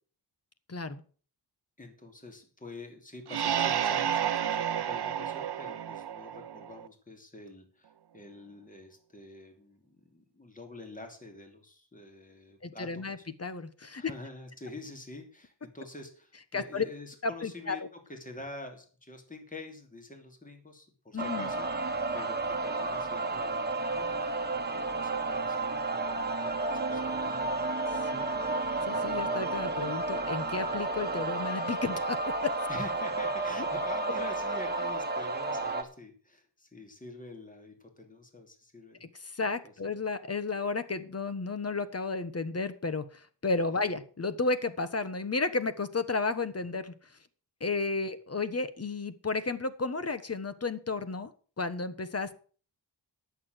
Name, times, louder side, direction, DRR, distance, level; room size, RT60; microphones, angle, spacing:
voice 1, 0.7-1.0 12.6-14.1 16.5-16.8 17.2-17.8 21.1-21.5 28.0-28.3 28.8-32.6 39.0-46.9 47.6-51.3 51.6-52.4, left 3 dB, 35° left, 12 dB, 1.3 m, -33 dB
voice 2, 1.8-13.1 13.9-17.8 18.1-27.2 32.7-39.3 39.6-39.9, left 2 dB, 20° left, 4 dB, 3.0 m, -46 dB
sound 1, 3.3-6.9, right 9 dB, 65° right, 0.8 m, -31 dB
sound 2, 21.2-35.8, right 3 dB, 25° right, 1.6 m, -32 dB
11.0 x 7.1 x 7.8 m, 0.42 s
wide cardioid pair, 80°, 43 cm